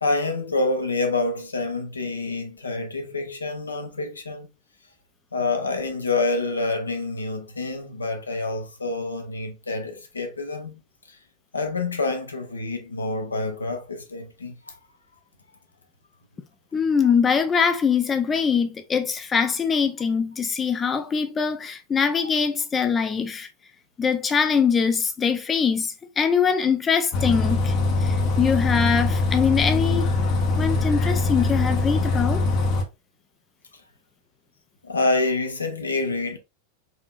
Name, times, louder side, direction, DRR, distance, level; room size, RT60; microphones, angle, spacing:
voice 1, 0.0-4.5 5.3-10.8 11.1-11.2 11.5-14.8 34.8-36.4, left 3 dB, 75° left, 0.7 m, -27 dB
voice 2, 16.7-23.5 24.0-27.7 28.0-30.1 30.6-32.4, left 6 dB, 20° left, 0.3 m, -23 dB
Bus, 27.1-32.8, left 3 dB, 40° left, 0.7 m, -22 dB
4.1 x 2.7 x 2.4 m
figure-of-eight pair, 90°, 0 cm